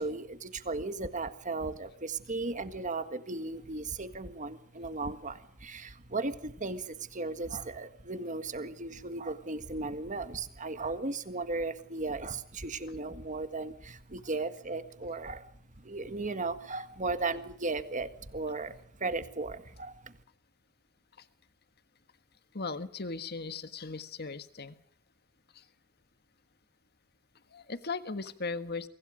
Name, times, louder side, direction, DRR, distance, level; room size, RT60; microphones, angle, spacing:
voice 1, 0.0-15.5 15.8-20.1, right 3 dB, 35° right, 10 dB, 1.7 m, -36 dB
voice 2, 22.5-24.8 25.5-25.6 27.5-28.9, left 4 dB, 45° left, 11 dB, 1.5 m, -38 dB
28.5 x 25.0 x 5.2 m, 0.69 s
head